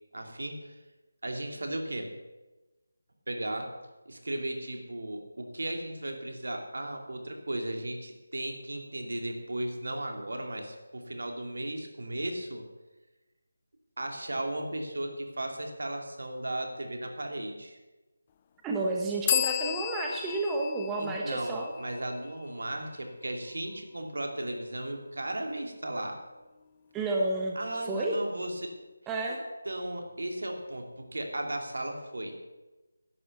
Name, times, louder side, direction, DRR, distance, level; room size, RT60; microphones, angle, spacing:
voice 1, 0.1-0.8 1.2-2.1 3.3-3.7 4.1-12.6 14.0-17.8 21.0-26.2 27.5-28.7 29.3-29.4 29.6-32.4, right 1 dB, 70° right, 3 dB, 2.5 m, -36 dB
voice 2, 18.6-21.7 26.9-27.6 27.9-28.2 29.1-29.4, right 2 dB, 10° right, -1 dB, 1.0 m, -30 dB
sound 1, 19.3-22.8, left 10 dB, 25° left, 0.5 m, -33 dB
11.0 x 10.0 x 6.7 m, 1.1 s
figure-of-eight pair, 160°, 0 cm